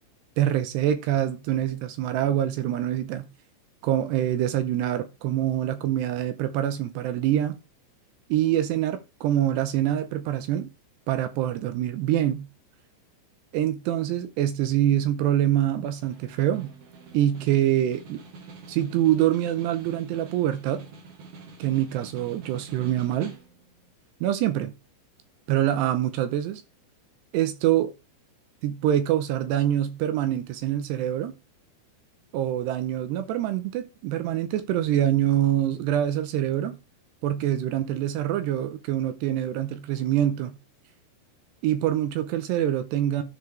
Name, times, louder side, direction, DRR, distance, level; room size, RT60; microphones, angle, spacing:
voice 1, 0.4-3.3 3.8-7.6 8.3-10.7 11.1-12.5 13.5-16.7 17.1-18.2 18.7-20.8 21.6-23.3 24.2-24.7 25.5-26.6 27.3-27.9 28.6-31.3 32.3-36.8 37.2-40.5 41.6-43.2, right 12 dB, 80° right, 2.7 m, -25 dB
Snare drum, 15.8-23.8, right 4 dB, 55° right, 2.3 m, -46 dB
13.5 x 4.8 x 3.3 m
omnidirectional pair, 5.3 m